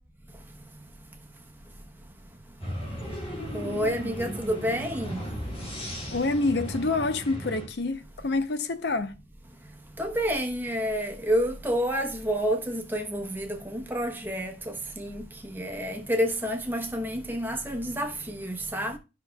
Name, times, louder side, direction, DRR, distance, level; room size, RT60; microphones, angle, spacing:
sound 1, 2.6-7.7, equal, 30° left, 3.8 m, -36 dB
voice 1, 3.5-5.2 10.0-14.5 15.0-15.2 15.5-19.0, equal, 10° right, 0.9 m, -29 dB
voice 2, 6.1-9.1, left 3 dB, 60° left, 0.6 m, -27 dB
12.5 x 5.7 x 2.3 m
head